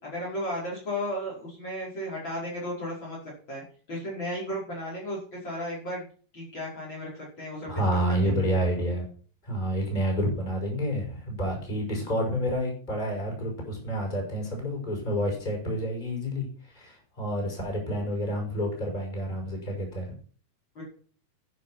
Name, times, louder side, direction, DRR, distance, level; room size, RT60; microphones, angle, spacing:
voice 1, 0.0-3.2 3.5-3.6 3.9-6.0 6.3-7.8 8.2-8.3 20.8-20.9, equal, 35° left, -4 dB, 5.7 m, -34 dB
voice 2, 7.6-9.1 9.4-20.1, equal, 10° left, 1 dB, 5.7 m, -29 dB
11.5 x 10.0 x 6.0 m, 0.43 s
omnidirectional pair, 4.0 m